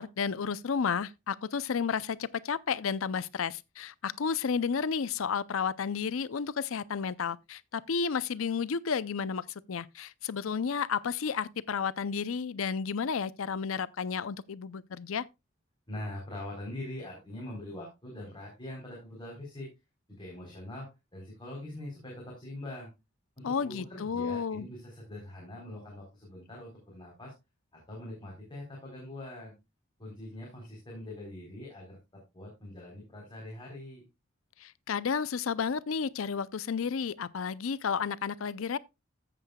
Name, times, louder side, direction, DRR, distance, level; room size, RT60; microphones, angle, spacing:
voice 1, 0.0-15.3 23.4-24.7 34.6-38.8, left 6 dB, 80° left, 0.5 m, -32 dB
voice 2, 15.9-19.7 20.1-22.9 23.4-27.3 27.9-29.5 30.0-32.0 32.3-34.0, left 1 dB, 25° left, 3.8 m, -43 dB
14.5 x 7.5 x 2.3 m
head